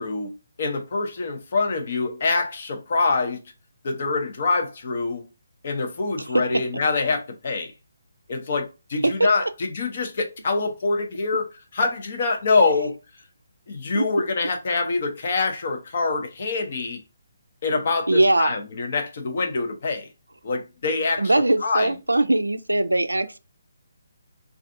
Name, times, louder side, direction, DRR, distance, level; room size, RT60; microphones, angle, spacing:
voice 1, 0.0-3.4 3.8-5.2 5.6-7.7 8.3-11.4 11.7-13.0 13.7-17.0 17.6-20.1 20.4-21.4 21.6-21.9, left 3 dB, 45° left, 0.7 m, -25 dB
voice 2, 18.1-18.5 21.2-23.4, right 2 dB, 80° right, 0.3 m, -21 dB
3.3 x 2.5 x 2.5 m
figure-of-eight pair, 140°, 0 cm